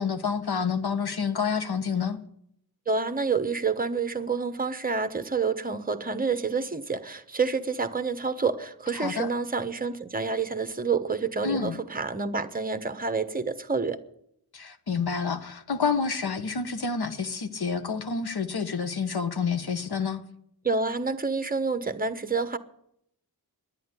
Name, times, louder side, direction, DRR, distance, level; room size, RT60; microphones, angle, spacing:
voice 1, 0.0-2.2 9.0-9.3 11.4-11.8 14.5-20.2, left 5 dB, 75° left, 1.2 m, -28 dB
voice 2, 2.9-14.0 20.6-22.6, right 4 dB, 25° right, 0.9 m, -28 dB
11.0 x 9.8 x 9.5 m
wide cardioid pair, 85°, 38 cm